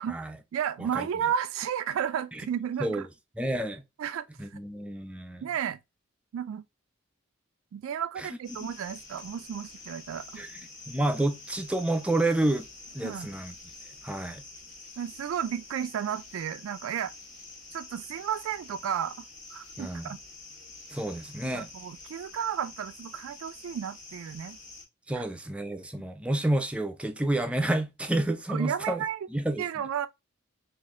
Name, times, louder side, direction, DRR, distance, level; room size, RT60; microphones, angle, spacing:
voice 1, 0.5-3.0 4.0-4.3 4.5-4.6 5.4-5.8 6.3-6.6 7.7-10.4 13.0-13.3 15.0-17.1 17.7-19.2 19.5-20.2 21.5-24.6 25.1-25.3 28.5-29.3 29.6-30.1, right 8 dB, 80° right, 0.3 m, -33 dB
voice 2, 3.4-3.8 4.4-5.5 8.2-8.3 10.4-10.6 10.9-12.7 12.9-13.5 14.0-14.4 19.8-20.2 20.9-21.7 25.1-29.0 29.3-29.6, right 1 dB, 5° right, 0.4 m, -29 dB
sound 1, 8.4-24.9, left 3 dB, 35° left, 1.3 m, -47 dB
4.2 x 2.5 x 3.5 m
head